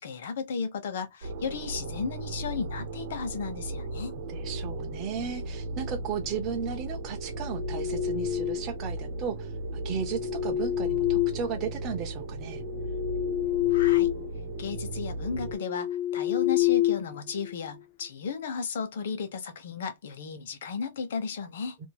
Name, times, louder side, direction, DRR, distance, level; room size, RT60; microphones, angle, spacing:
voice 1, 0.0-4.1 13.7-14.1 14.6-21.8, left 5 dB, 65° left, 0.9 m, -34 dB
sound 1, 1.2-15.5, right 2 dB, 60° right, 0.8 m, -36 dB
voice 2, 4.3-12.6, right 7 dB, 20° right, 0.5 m, -35 dB
sound 2, 7.3-8.8 9.8-11.9 12.4-14.3 14.6-14.8 15.3-17.7, left 14 dB, 30° left, 0.4 m, -28 dB
2.6 x 2.5 x 2.9 m
supercardioid pair, 175°, 0 cm